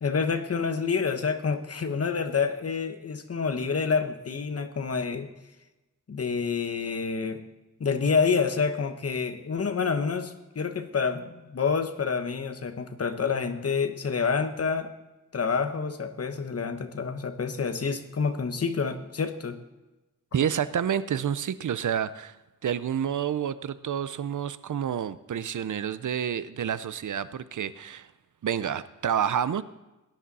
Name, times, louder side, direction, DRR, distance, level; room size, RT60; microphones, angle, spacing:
voice 1, 0.0-5.3 6.1-7.4 7.8-14.9 15.3-19.6, left 5 dB, 50° left, 8 dB, 1.1 m, -28 dB
voice 2, 20.3-22.4 22.6-28.1 28.4-29.6, right 8 dB, 65° right, 15 dB, 0.6 m, -29 dB
18.0 x 10.0 x 4.1 m, 1.0 s
wide cardioid pair, 135°, 32 cm